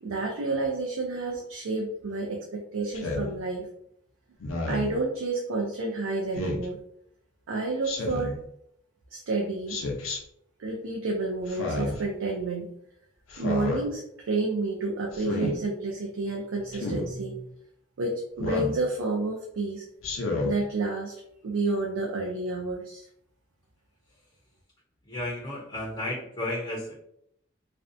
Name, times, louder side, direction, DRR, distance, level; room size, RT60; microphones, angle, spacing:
voice 1, 0.0-3.7 4.7-6.8 7.5-8.4 9.1-9.8 10.6-12.7 13.4-17.5 18.0-19.8 20.4-21.1 21.4-23.1, right 3 dB, 90° right, -1 dB, 0.4 m, -30 dB
Speech synthesizer, 2.9-3.3 4.4-4.9 6.3-6.7 7.8-8.4 9.7-10.2 11.5-12.0 13.3-13.8 15.1-15.5 16.7-17.1 18.4-18.8 20.0-20.5, left 2 dB, 80° left, 0.6 m, -30 dB
voice 2, 25.1-27.0, left 1 dB, 20° left, -4 dB, 0.5 m, -33 dB
2.5 x 2.1 x 2.5 m, 0.74 s
head